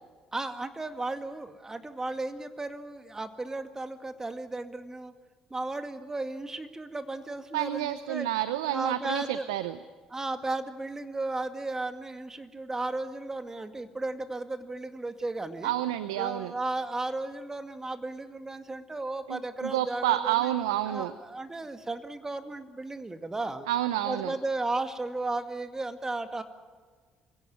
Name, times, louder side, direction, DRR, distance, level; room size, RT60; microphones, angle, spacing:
voice 1, 0.3-5.1 5.5-8.3 8.7-9.4 10.1-15.7 16.2-20.3 20.9-23.7 24.1-26.4, right 2 dB, 20° right, 8 dB, 2.1 m, -34 dB
voice 2, 7.5-9.8 15.6-16.6 19.3-21.1 23.7-24.3, right 13 dB, 85° right, 13 dB, 0.6 m, -29 dB
24.5 x 17.0 x 9.5 m, 1.5 s
hypercardioid pair, 55°, 2 cm